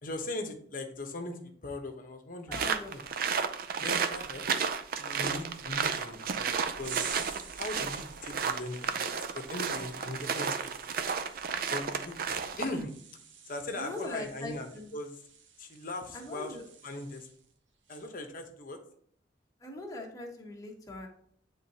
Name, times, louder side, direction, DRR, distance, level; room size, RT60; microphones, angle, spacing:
voice 1, 0.0-3.0 3.8-4.5 5.0-6.5 6.8-7.0 7.6-11.0 11.7-12.2 12.6-12.9 13.5-15.1 15.6-16.6 16.8-17.3 17.9-18.8, left 2 dB, 50° left, 5 dB, 0.9 m, -39 dB
voice 2, 2.5-3.0 13.7-14.9 16.1-16.6 19.6-21.1, left 2 dB, 20° left, 0 dB, 1.2 m, -41 dB
sound 1, 2.5-12.8, right 6 dB, 50° right, 0.5 m, -32 dB
sound 2, 6.8-17.5 17.9-18.2, right 7 dB, 85° right, 0.9 m, -49 dB
9.3 x 3.8 x 2.8 m, 0.64 s
head